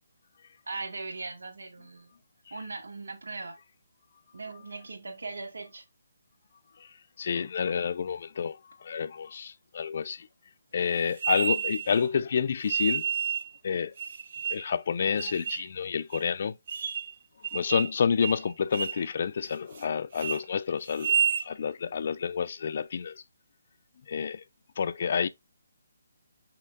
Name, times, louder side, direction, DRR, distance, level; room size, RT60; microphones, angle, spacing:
voice 1, 0.7-2.1 2.5-3.6 4.3-5.8, right 3 dB, 75° right, 1.5 m, -39 dB
voice 2, 7.2-10.3 10.7-13.1 13.6-13.9 14.5-16.6 17.5-21.2 21.4-23.2 24.1-24.4 24.8-25.3, left 6 dB, 50° left, 0.4 m, -29 dB
sound 1, 11.2-12.0 12.7-13.5 14.0-14.7 15.2-15.7 16.1-16.2 16.7-17.1 17.4-18.0 18.2-18.4 18.7-19.0 19.4-19.9 20.1-20.4 20.9-21.5, right 8 dB, 50° right, 0.5 m, -30 dB
5.8 x 3.2 x 2.4 m
figure-of-eight pair, 150°, 0 cm